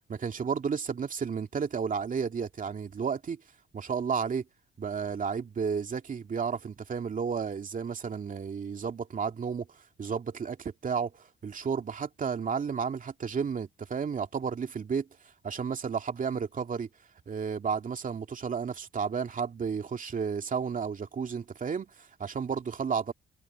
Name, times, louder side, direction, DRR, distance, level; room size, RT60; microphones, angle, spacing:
voice 1, 0.1-3.4 3.7-4.4 4.8-9.7 10.0-15.1 15.4-16.9 17.3-23.1, right 6 dB, 40° right, 2.5 m, -32 dB
cardioid pair, 90°, 20 cm